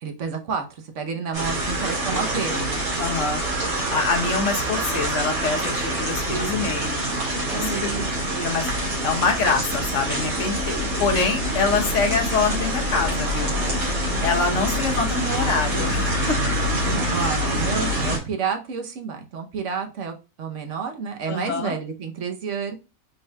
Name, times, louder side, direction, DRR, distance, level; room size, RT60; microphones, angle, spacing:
voice 1, 0.0-2.8 7.5-8.1 16.9-22.8, right 5 dB, 65° right, 5 dB, 1.2 m, -30 dB
sound 1, 1.3-18.2, equal, 80° right, 2.5 m, -25 dB
voice 2, 3.0-3.4 3.9-7.0 7.5-7.9 8.3-8.7 9.0-13.6 14.2-16.4 17.2-17.5 21.3-21.7, left 4 dB, 60° left, 3 dB, 1.4 m, -25 dB
5.3 x 3.9 x 2.3 m, 0.30 s
omnidirectional pair, 1.5 m